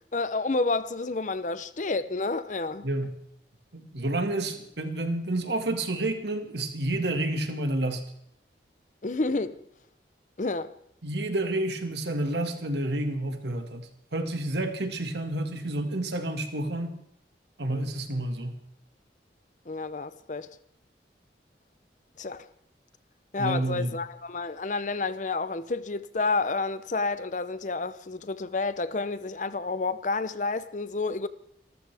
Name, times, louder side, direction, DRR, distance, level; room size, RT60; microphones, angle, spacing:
voice 1, 0.1-2.9 9.0-9.6 10.4-10.7 19.7-20.5 22.2-22.5 23.3-31.3, left 3 dB, 45° left, 0.6 m, -30 dB
voice 2, 3.7-8.0 11.0-16.9 17.6-18.6 23.4-24.0, right 1 dB, 70° right, 1.9 m, -29 dB
26.0 x 14.0 x 3.5 m
head